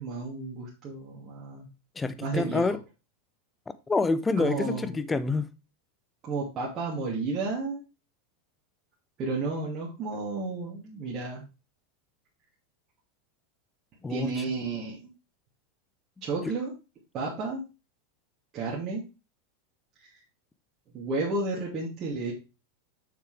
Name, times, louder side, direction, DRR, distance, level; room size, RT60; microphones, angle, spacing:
voice 1, 0.0-1.7 2.2-2.7 4.4-4.9 6.2-7.8 9.2-11.4 14.1-15.1 16.2-16.7 17.1-17.6 18.5-19.0 20.9-22.3, right 3 dB, 40° right, 2.6 m, -32 dB
voice 2, 2.0-2.8 3.9-5.5 14.0-14.3 16.5-16.6, left 3 dB, 15° left, 0.7 m, -27 dB
6.7 x 6.5 x 3.4 m
hypercardioid pair, 95°, 0 cm